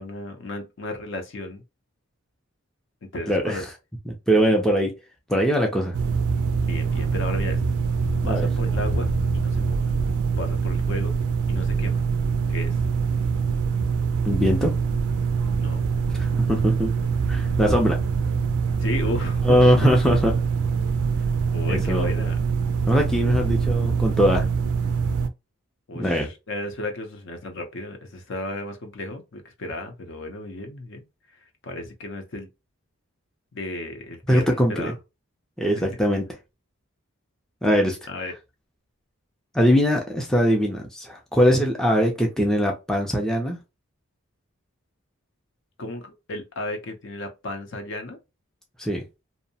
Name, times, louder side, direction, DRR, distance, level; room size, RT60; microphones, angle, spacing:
voice 1, 0.0-1.6 3.1-3.7 4.5-4.6 6.5-7.6 8.2-9.1 9.3-9.8 10.4-11.2 11.5-12.0 12.5-12.8 15.6-15.8 17.3-17.4 18.8-19.8 21.5-22.4 25.9-31.1 31.6-32.5 33.5-34.9 35.8-36.0 38.1-38.3 45.8-48.2, left 2 dB, 55° left, 0.6 m, -34 dB
voice 2, 3.3-3.6 4.1-5.0 5.3-5.9 8.2-8.5 14.2-14.7 16.2-17.0 17.3-18.0 19.4-20.3 21.7-22.1 22.9-24.5 26.0-26.3 34.3-34.9 35.6-36.2 37.6-38.0 39.5-43.6 48.8-49.0, equal, ahead, 0.4 m, -21 dB
sound 1, 5.9-25.3, right 5 dB, 85° right, 0.4 m, -24 dB
2.6 x 2.0 x 2.7 m
head